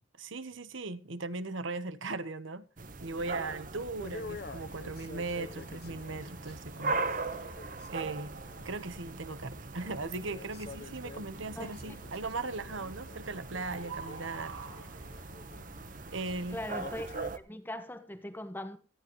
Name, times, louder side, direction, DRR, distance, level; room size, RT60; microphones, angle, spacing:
voice 1, 0.2-2.7 3.0-7.5 7.9-8.3 8.6-15.0 16.1-16.6, right 3 dB, 70° right, 1.2 m, -38 dB
sound 1, 2.8-17.4, right 3 dB, 40° right, 1.1 m, -41 dB
sound 2, 3.6-16.7, right 4 dB, 85° right, 6.4 m, -53 dB
sound 3, 4.0-17.3, left 3 dB, 50° left, 0.9 m, -49 dB
voice 2, 16.5-17.1 17.3-18.8, left 1 dB, 10° left, 1.4 m, -40 dB
18.0 x 14.5 x 3.1 m
head